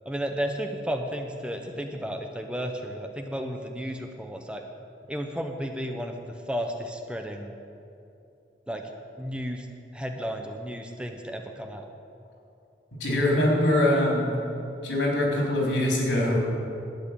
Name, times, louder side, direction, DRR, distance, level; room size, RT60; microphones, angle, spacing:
voice 1, 0.1-4.6 5.1-7.5 8.7-8.9 9.2-9.7 9.9-11.9, equal, 5° right, 4 dB, 0.7 m, -33 dB
voice 2, 13.0-14.3 14.8-16.4, left 1 dB, 90° left, -2 dB, 3.8 m, -23 dB
12.0 x 9.1 x 7.4 m, 2.7 s
head